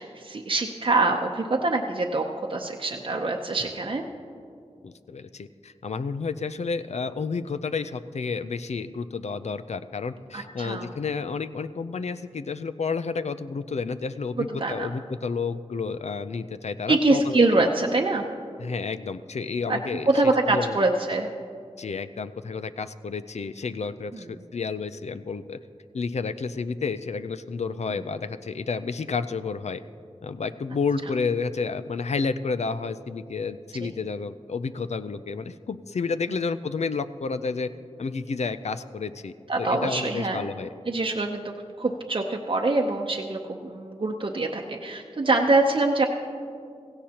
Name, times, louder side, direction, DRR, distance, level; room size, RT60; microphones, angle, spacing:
voice 1, 0.0-4.0 10.3-10.9 14.6-14.9 16.9-18.3 19.7-19.8 20.1-21.3 24.1-24.3 33.8-33.9 39.5-40.5 40.9-46.0, right 2 dB, 45° right, 1 dB, 0.8 m, -24 dB
voice 2, 4.8-17.4 18.6-20.1 20.5-20.8 21.8-25.6 25.9-29.8 30.2-37.7 38.0-40.7, left 4 dB, 70° left, 11 dB, 0.5 m, -30 dB
16.5 x 15.5 x 2.9 m, 2.4 s
wide cardioid pair, 55°, 12 cm